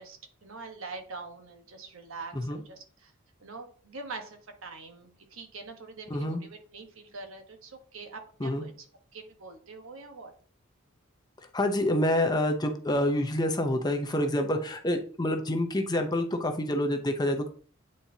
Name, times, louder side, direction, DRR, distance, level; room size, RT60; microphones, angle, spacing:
voice 1, 0.0-3.1 3.4-8.7 9.1-10.3, right 3 dB, 75° right, 4 dB, 1.2 m, -44 dB
voice 2, 6.1-6.4 8.4-8.7 11.5-17.5, left 1 dB, 20° left, 5 dB, 0.7 m, -27 dB
8.9 x 4.2 x 2.8 m, 0.43 s
head